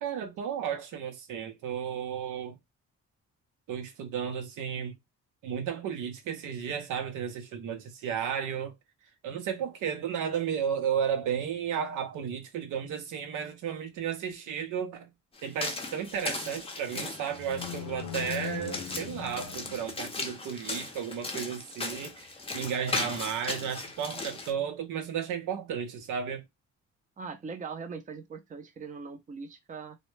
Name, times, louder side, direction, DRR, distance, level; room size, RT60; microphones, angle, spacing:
voice 1, 0.0-2.6 3.7-4.9 5.4-8.7 9.2-15.1 15.4-26.4, right 8 dB, 85° right, 0.7 m, -33 dB
sound 1, 15.4-24.5, left 3 dB, 20° left, 0.6 m, -37 dB
sound 2, 17.1-20.3, left 10 dB, 85° left, 0.5 m, -40 dB
voice 2, 27.2-30.0, right 5 dB, 25° right, 0.5 m, -41 dB
2.1 x 2.1 x 3.1 m
cardioid pair, 90°, 30 cm